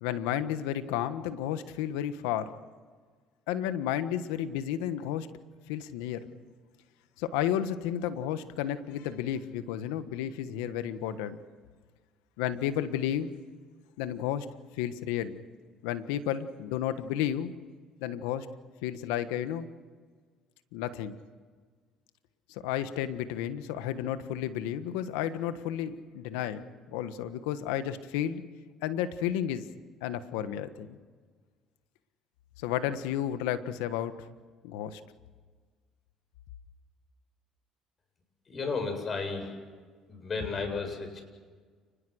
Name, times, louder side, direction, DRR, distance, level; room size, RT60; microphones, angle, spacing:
voice 1, 0.0-2.5 3.5-5.3 5.7-6.3 7.2-11.4 12.4-13.3 14.0-14.5 14.8-15.4 15.8-17.5 18.0-18.5 18.8-19.7 20.7-21.2 22.5-26.6 26.9-28.4 28.8-29.7 30.0-31.0 32.6-34.1 34.6-35.0, left 10 dB, 90° left, 11 dB, 1.4 m, -32 dB
voice 2, 38.5-39.5 40.1-41.2, left 4 dB, 40° left, 5 dB, 7.9 m, -33 dB
30.0 x 20.5 x 6.5 m, 1.5 s
supercardioid pair, 80°, 0 cm